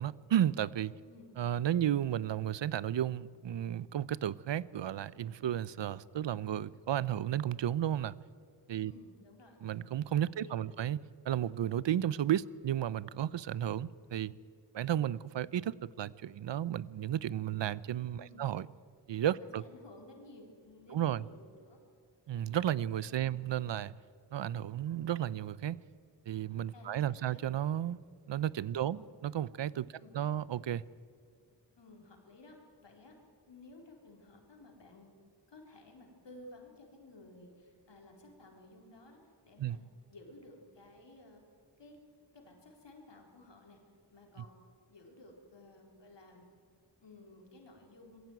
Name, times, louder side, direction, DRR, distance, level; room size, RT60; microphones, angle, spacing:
voice 1, 0.0-0.9 1.4-8.2 8.7-8.9 9.6-11.0 11.3-14.3 14.7-18.7 19.1-19.6 20.9-21.3 22.3-23.9 24.3-25.8 26.3-28.0 28.3-29.9 30.1-30.8 39.6-39.8, right 11 dB, 80° right, 0.6 m, -33 dB
voice 2, 1.0-1.4 8.8-9.6 10.4-10.7 18.1-18.5 19.4-21.8 23.1-23.4 26.7-27.4 28.7-29.0 29.9-30.3 31.8-33.2 33.5-35.1 35.5-41.4 41.8-42.0 42.3-43.8 44.1-44.6 44.9-46.5 47.0-48.2, left 2 dB, 75° left, 4.2 m, -55 dB
22.0 x 15.5 x 9.3 m
wide cardioid pair, 75°, 44 cm